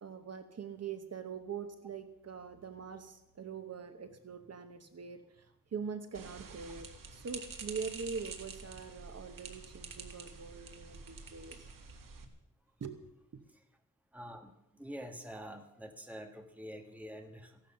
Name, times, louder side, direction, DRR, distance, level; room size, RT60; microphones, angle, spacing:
voice 1, 0.0-11.7 12.8-13.4, right 6 dB, 50° right, 9 dB, 1.0 m, -43 dB
sound 1, 6.1-12.2, right 5 dB, 80° right, 1.9 m, -48 dB
voice 2, 14.1-17.6, equal, 5° right, 4 dB, 1.5 m, -46 dB
15.5 x 11.5 x 6.9 m, 0.86 s
wide cardioid pair, 180°, 33 cm